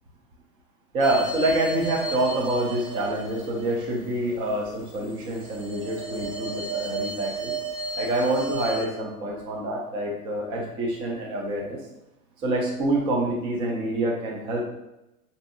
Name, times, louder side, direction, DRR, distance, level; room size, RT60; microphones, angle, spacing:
voice 1, 0.9-7.5 7.9-11.8 12.4-14.6, right 1 dB, 10° right, -2 dB, 0.4 m, -27 dB
sound 1, 1.0-4.3 4.9-8.8, right 4 dB, 30° right, 0.9 m, -33 dB
5.1 x 2.6 x 2.6 m, 0.93 s
figure-of-eight pair, 105°, 46 cm